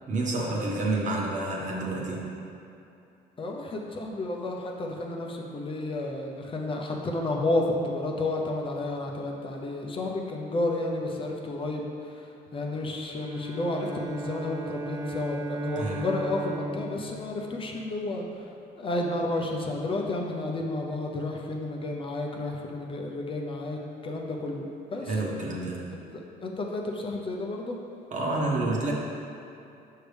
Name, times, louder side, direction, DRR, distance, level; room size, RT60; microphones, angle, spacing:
voice 1, 0.1-2.2 15.8-16.0 25.1-25.9 28.1-28.9, right 2 dB, 45° right, -3 dB, 1.3 m, -29 dB
voice 2, 3.4-18.3 18.8-25.1 25.9-27.8, left 2 dB, 30° left, 0 dB, 0.7 m, -31 dB
Bowed string instrument, 13.1-18.4, right 2 dB, 20° right, 0.6 m, -36 dB
6.5 x 6.2 x 3.4 m, 2.7 s
cardioid pair, 110°, 17 cm